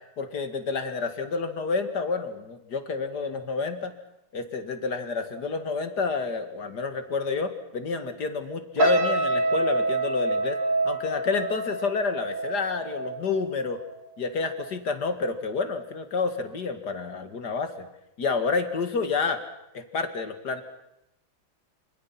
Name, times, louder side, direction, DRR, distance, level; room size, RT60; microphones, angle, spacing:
voice 1, 0.2-3.9 4.3-10.6 10.8-13.8 14.2-17.9 18.2-19.4 19.7-20.6, left 4 dB, 50° left, 8 dB, 2.5 m, -29 dB
sound 1, 8.8-14.1 14.4-14.7, right 2 dB, 55° right, 3.5 m, -27 dB
28.0 x 26.5 x 5.9 m, 0.85 s
omnidirectional pair, 2.3 m